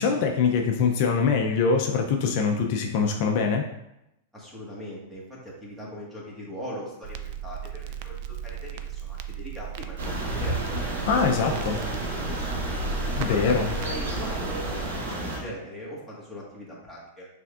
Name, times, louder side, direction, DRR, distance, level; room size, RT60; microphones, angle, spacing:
voice 1, 0.0-3.6 11.1-11.8 13.2-13.7, left 5 dB, 50° left, 3 dB, 0.5 m, -23 dB
voice 2, 4.3-10.8 11.1-12.8 13.2-17.3, left 1 dB, ahead, -6 dB, 1.5 m, -40 dB
Crackle, 7.0-14.9, right 10 dB, 50° right, 0.4 m, -37 dB
sound 1, 10.0-15.4, right 1 dB, 90° right, 1.3 m, -31 dB
sound 2, 12.2-15.2, left 1 dB, 25° right, 1.6 m, -36 dB
5.8 x 3.5 x 2.4 m, 0.87 s
hypercardioid pair, 135°, 0 cm